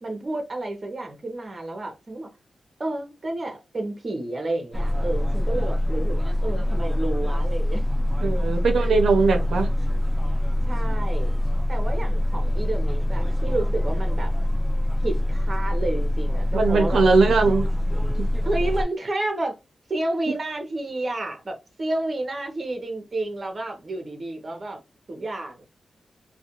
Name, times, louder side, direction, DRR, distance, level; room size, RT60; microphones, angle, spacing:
voice 1, 0.0-2.3 2.8-7.8 8.8-8.9 10.7-11.3 11.7-14.3 15.0-17.2 18.4-19.6 19.9-24.8 25.1-25.6, right 2 dB, 35° right, 0.8 m, -30 dB
sound 1, 4.7-18.8, left 1 dB, 10° right, 0.4 m, -24 dB
voice 2, 8.2-9.7 16.5-17.6, right 4 dB, 90° right, 0.5 m, -20 dB
2.3 x 2.2 x 2.8 m
wide cardioid pair, 125°, 0 cm